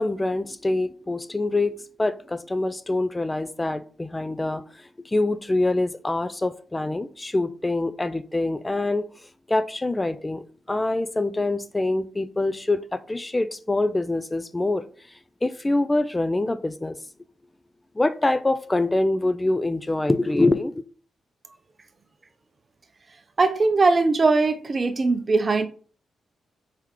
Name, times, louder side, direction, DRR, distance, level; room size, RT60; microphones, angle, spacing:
voice 1, 0.0-9.0 9.5-14.9 15.4-17.0 18.0-20.8, left 2 dB, 20° left, 0.3 m, -25 dB
voice 2, 23.4-25.7, right 3 dB, 40° right, 0.5 m, -20 dB
4.5 x 3.7 x 3.0 m
cardioid pair, 70°, 0 cm